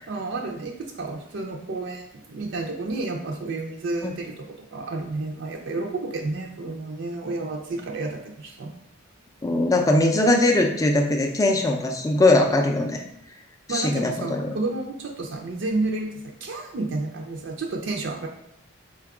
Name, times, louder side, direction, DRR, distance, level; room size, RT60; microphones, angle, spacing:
voice 1, 0.1-8.7 13.7-18.3, right 2 dB, 55° right, 1 dB, 0.4 m, -31 dB
voice 2, 9.4-13.0 13.7-14.5, left 2 dB, 15° left, 2 dB, 0.4 m, -21 dB
4.3 x 2.3 x 4.7 m, 0.80 s
head